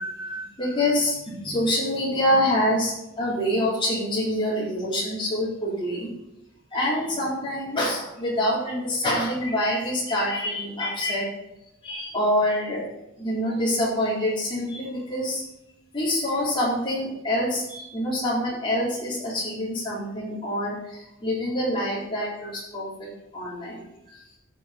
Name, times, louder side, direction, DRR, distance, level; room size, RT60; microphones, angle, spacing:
voice 1, 0.0-6.1 6.7-11.3 11.8-12.8 13.2-15.4 15.9-23.1 23.3-24.4, left 1 dB, 25° left, -6 dB, 4.0 m, -26 dB
14.5 x 6.4 x 4.4 m, 0.90 s
head